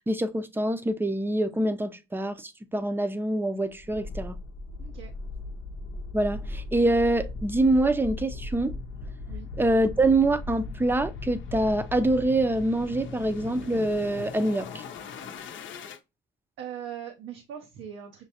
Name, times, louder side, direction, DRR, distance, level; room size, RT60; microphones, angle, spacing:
voice 1, 0.1-4.4 6.1-8.7 9.6-14.8, right 2 dB, 10° right, 0.5 m, -25 dB
sound 1, 3.8-16.0, left 3 dB, 70° left, 0.6 m, -38 dB
voice 2, 4.8-5.1 9.3-9.5 16.6-18.3, right 9 dB, 75° right, 0.7 m, -40 dB
6.4 x 2.1 x 2.8 m
cardioid pair, 90°, 20 cm